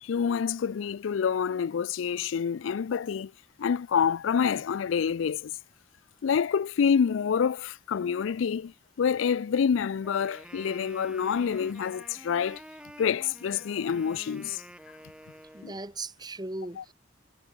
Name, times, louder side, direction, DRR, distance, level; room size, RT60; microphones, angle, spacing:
voice 1, 0.0-3.3 3.6-5.5 6.2-8.7 9.0-12.6 13.0-14.6 15.6-15.7 16.8-16.9, left 7 dB, 80° left, 0.4 m, -27 dB
Wind instrument woodwind instrument, 10.0-15.9, equal, 5° right, 4.9 m, -49 dB
voice 2, 15.5-16.9, right 2 dB, 20° right, 2.1 m, -38 dB
head